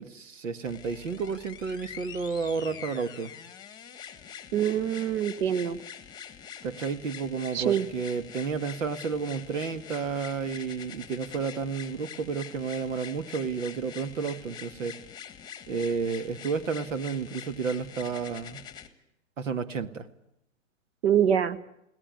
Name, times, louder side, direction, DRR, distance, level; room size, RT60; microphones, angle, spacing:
voice 1, 0.0-3.3 6.6-15.0 15.7-18.6 19.4-20.1, right 5 dB, 70° right, 11 dB, 1.9 m, -31 dB
sound 1, 0.7-18.9 19.8-19.9, left 8 dB, 10° left, 1.6 m, -45 dB
voice 2, 4.5-5.8 7.5-7.9 21.0-21.6, right 9 dB, 50° right, 14 dB, 1.5 m, -24 dB
21.5 x 18.0 x 9.6 m, 0.80 s
hypercardioid pair, 130°, 40 cm